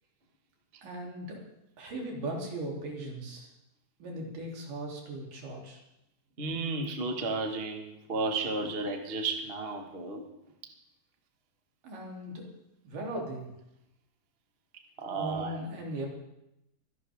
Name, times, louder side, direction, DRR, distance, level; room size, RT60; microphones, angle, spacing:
voice 1, 0.8-1.4 1.8-3.5 4.0-5.8 11.8-12.5 12.8-13.5 15.1-16.1, right 1 dB, 70° right, -2 dB, 4.7 m, -38 dB
voice 2, 6.4-10.2 15.0-15.6, right 3 dB, 45° right, 3 dB, 0.7 m, -33 dB
25.0 x 11.0 x 3.6 m, 0.84 s
omnidirectional pair, 4.0 m